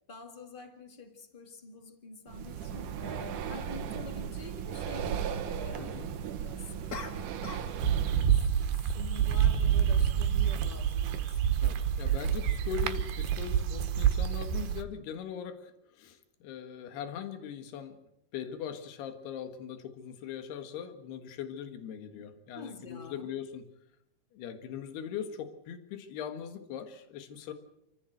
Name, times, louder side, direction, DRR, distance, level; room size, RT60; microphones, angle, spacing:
voice 1, 0.1-11.4 22.5-23.3, left 3 dB, 65° left, 6 dB, 0.5 m, -47 dB
Breathing, 2.3-8.4, right 8 dB, 65° right, 2.5 m, -37 dB
voice 2, 5.8-6.1 11.6-18.0 18.3-23.7 24.3-27.5, left 9 dB, 85° left, 8 dB, 3.7 m, -40 dB
sound 1, 6.9-7.8 8.0-8.4, left 4 dB, 35° left, 1.6 m, -42 dB
sound 2, 7.8-14.8, right 9 dB, 85° right, 3.3 m, -27 dB
28.0 x 14.5 x 7.9 m, 0.81 s
omnidirectional pair, 4.5 m